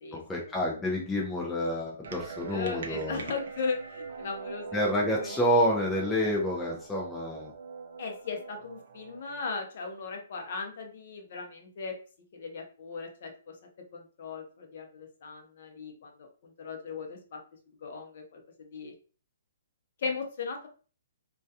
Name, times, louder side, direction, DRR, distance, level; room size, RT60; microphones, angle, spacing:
voice 1, 0.1-3.2 4.7-7.5, equal, 5° left, -4 dB, 0.3 m, -28 dB
sound 1, 2.0-9.5, right 5 dB, 60° right, 0.5 m, -43 dB
voice 2, 2.5-5.3 8.0-12.0 12.3-13.6 13.9-17.4 17.8-18.9 20.0-20.7, left 4 dB, 50° left, 3 dB, 0.6 m, -37 dB
2.3 x 2.2 x 2.6 m, 0.38 s
hypercardioid pair, 170°, 0 cm